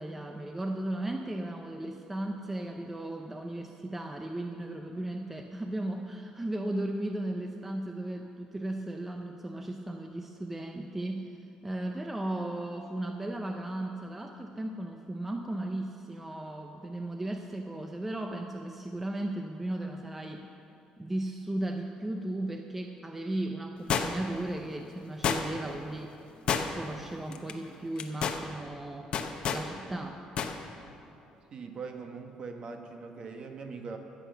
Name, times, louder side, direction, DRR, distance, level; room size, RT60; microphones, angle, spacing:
voice 1, 0.0-11.3 11.6-20.5 21.0-26.1 26.7-29.1 29.5-30.2, right 1 dB, 10° right, 4 dB, 0.5 m, -36 dB
sound 1, 23.9-24.4 25.2-25.7 26.5-27.0 27.3-27.5 28.0-28.4 29.1-29.7 30.4-30.6 30.9-31.0, left 7 dB, 50° left, 0.8 m, -29 dB
voice 2, 31.5-34.0, right 4 dB, 40° right, 4 dB, 1.2 m, -41 dB
13.5 x 7.9 x 6.7 m, 2.9 s
cardioid pair, 140°, 2 cm